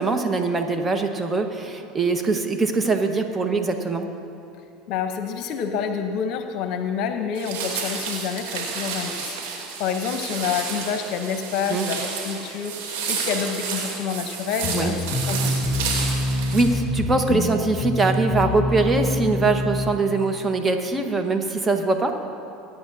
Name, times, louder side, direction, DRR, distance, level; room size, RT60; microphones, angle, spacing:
voice 1, 0.0-4.1 11.7-11.9 14.7-15.0 16.3-22.1, right 3 dB, 20° right, 5 dB, 1.3 m, -22 dB
voice 2, 4.9-9.3 9.8-12.8 13.1-15.0 15.3-15.8, left 7 dB, 60° left, 7 dB, 0.8 m, -28 dB
sound 1, 7.3-16.6, right 5 dB, 70° right, 3.0 m, -31 dB
sound 2, 14.6-19.9, left 1 dB, 40° left, 1.7 m, -26 dB
21.5 x 9.7 x 2.7 m, 2.7 s
hypercardioid pair, 85°, 0 cm